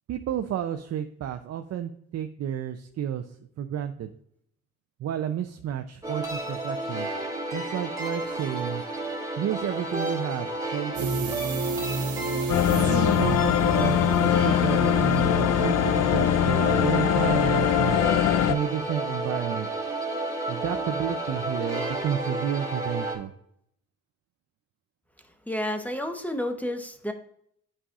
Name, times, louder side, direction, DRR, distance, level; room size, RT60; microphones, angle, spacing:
voice 1, 0.1-3.3 3.6-4.1 5.0-7.1 7.5-8.8 9.4-11.3 12.6-17.9 18.5-19.7 20.5-23.3, right 10 dB, 55° right, 6 dB, 0.6 m, -31 dB
sound 1, 6.0-23.2, right 2 dB, 10° right, 2.0 m, -32 dB
sound 2, 10.9-17.7 18.0-18.2, right 3 dB, 75° right, 1.1 m, -33 dB
sound 3, 12.5-18.6, left 11 dB, 60° left, 0.5 m, -22 dB
voice 2, 25.2-27.1, left 1 dB, 5° left, 6 dB, 0.9 m, -31 dB
8.8 x 5.5 x 2.4 m, 0.70 s
cardioid pair, 90°, 30 cm